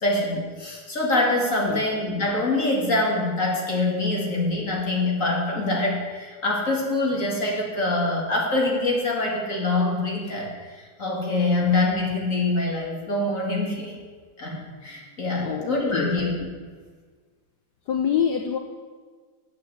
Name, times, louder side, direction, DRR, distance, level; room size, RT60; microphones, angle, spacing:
voice 1, 0.0-13.9 14.4-16.5, left 2 dB, 40° left, -2 dB, 2.5 m, -25 dB
voice 2, 15.4-16.2 17.9-18.6, left 8 dB, 65° left, 5 dB, 1.2 m, -26 dB
9.8 x 8.3 x 7.9 m, 1.5 s
omnidirectional pair, 2.2 m